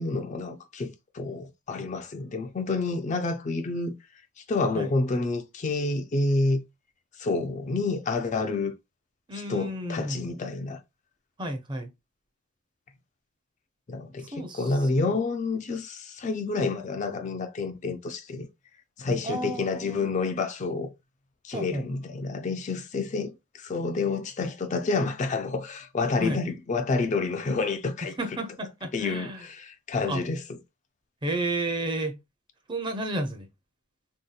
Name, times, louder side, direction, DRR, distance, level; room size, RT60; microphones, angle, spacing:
voice 1, 0.0-4.0 4.5-6.6 7.2-8.7 9.3-10.8 13.9-18.5 19.0-20.9 21.4-28.1 28.9-30.4, left 3 dB, 35° left, 0.3 m, -29 dB
voice 2, 9.3-10.3 11.4-11.9 14.3-14.8 19.2-20.1 21.5-21.9 26.2-26.4 28.2-29.4 30.1-30.2 31.2-32.2 32.7-33.5, right 1 dB, 20° right, 0.5 m, -32 dB
3.4 x 2.7 x 2.2 m
head